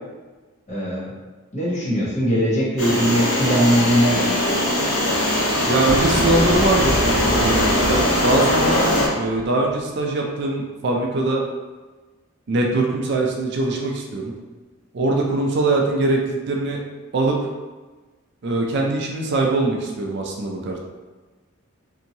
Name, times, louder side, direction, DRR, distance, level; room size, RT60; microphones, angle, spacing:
voice 1, 0.7-1.1 1.5-4.3, equal, 35° left, -7 dB, 0.9 m, -20 dB
sound 1, 2.8-9.1, left 1 dB, 75° left, 0.7 m, -20 dB
voice 2, 5.7-8.8 9.1-11.4 12.5-14.3 14.9-16.8 17.1-17.4 18.4-20.8, right 2 dB, 55° right, 0 dB, 0.4 m, -22 dB
sound 2, 5.8-9.8, equal, 15° left, 0.4 m, -28 dB
2.8 x 2.6 x 2.6 m, 1.3 s
head